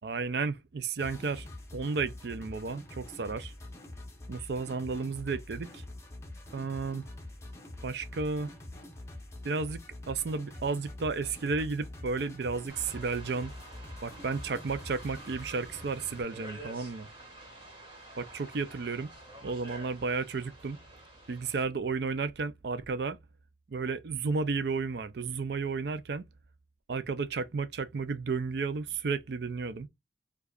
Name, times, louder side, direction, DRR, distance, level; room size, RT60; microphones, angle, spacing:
voice 1, 0.0-1.5 1.7-3.5 4.3-5.8 6.5-7.0 7.8-8.5 9.4-9.8 10.1-13.5 14.0-17.1 18.2-19.1 19.4-20.8 21.3-23.2 23.7-26.3 26.9-29.9, right 4 dB, 65° right, 0.5 m, -33 dB
sound 1, 1.0-16.2, left 1 dB, 15° left, 0.8 m, -45 dB
sound 2, 12.7-21.6, right 2 dB, 30° right, 1.7 m, -49 dB
4.7 x 2.3 x 2.3 m
head